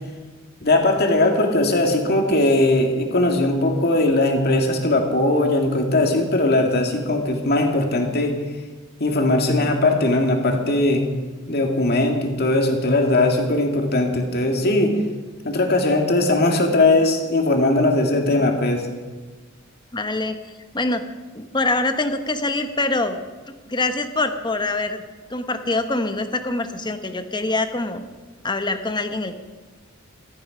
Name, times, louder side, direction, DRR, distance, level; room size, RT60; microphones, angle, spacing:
voice 1, 0.6-8.3 9.0-11.0 11.5-14.9 15.4-18.9, left 2 dB, 50° left, 3 dB, 2.1 m, -19 dB
voice 2, 19.9-20.4 20.7-21.0 21.3-23.2 23.5-25.0 25.3-28.0 28.4-29.4, left 2 dB, 20° left, 8 dB, 1.0 m, -24 dB
15.5 x 13.5 x 5.1 m, 1.3 s
head